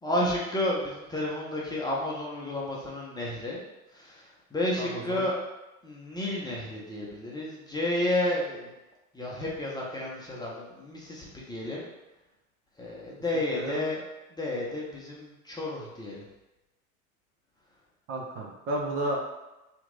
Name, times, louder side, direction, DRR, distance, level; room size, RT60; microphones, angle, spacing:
voice 1, 0.0-3.6 3.9-5.4 5.8-8.7 9.1-11.9 12.8-14.0 14.3-16.2, left 1 dB, 10° left, -5 dB, 0.7 m, -31 dB
voice 2, 4.8-5.2 13.5-13.8 18.1-19.2, right 1 dB, 35° right, -1 dB, 0.6 m, -32 dB
2.9 x 2.6 x 3.8 m, 0.99 s
figure-of-eight pair, 80°, 43 cm